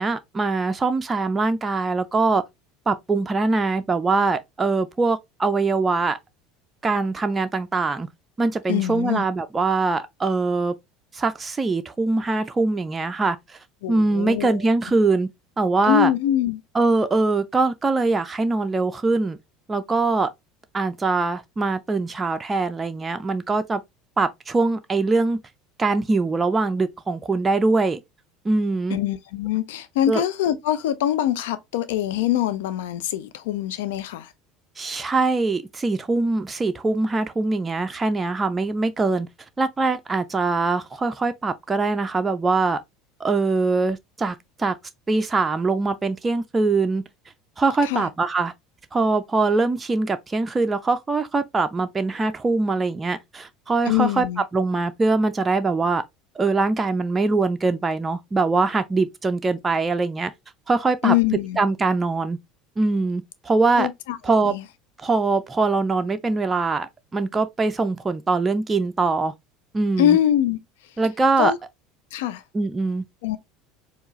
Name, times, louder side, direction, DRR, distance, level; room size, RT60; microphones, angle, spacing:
voice 1, 0.0-2.4 2.9-6.2 6.8-8.1 8.4-10.7 11.1-13.6 13.9-15.3 15.6-16.1 16.7-19.4 19.7-20.3 20.7-23.8 24.2-25.4 25.8-28.0 28.4-29.0 30.1-30.2 34.8-39.3 39.6-42.8 43.2-44.8 45.1-47.0 47.6-48.5 48.9-54.2 54.5-56.0 56.4-60.3 60.7-61.1 61.6-62.4 62.8-63.9 64.2-64.5 65.0-69.3 69.7-70.2 71.0-71.5 72.5-73.0, right 3 dB, 20° right, 0.4 m, -22 dB
voice 2, 8.7-9.2 13.8-14.6 15.9-16.6 28.9-34.3 47.8-48.1 53.8-54.4 61.0-61.6 63.8-64.2 64.4-64.6 70.0-70.6 71.4-71.6 72.1-72.4 73.2-73.4, left 12 dB, 70° left, 0.4 m, -23 dB
4.4 x 2.4 x 3.0 m
figure-of-eight pair, 70°, 0 cm